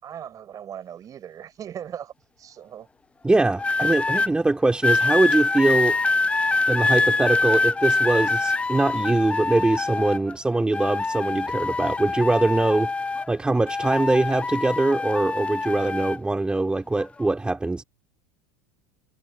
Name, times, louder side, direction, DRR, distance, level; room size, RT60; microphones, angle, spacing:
voice 1, 0.0-2.9, right 9 dB, 35° right, 5.5 m, -39 dB
voice 2, 3.2-6.0 6.7-12.9 13.3-17.8, right 2 dB, 10° right, 2.2 m, -22 dB
sound 1, 3.6-4.3 4.8-10.3 10.7-13.4 13.7-16.2 17.0-17.2, left 3 dB, 10° left, 0.7 m, -24 dB
supercardioid pair, 110°, 10 cm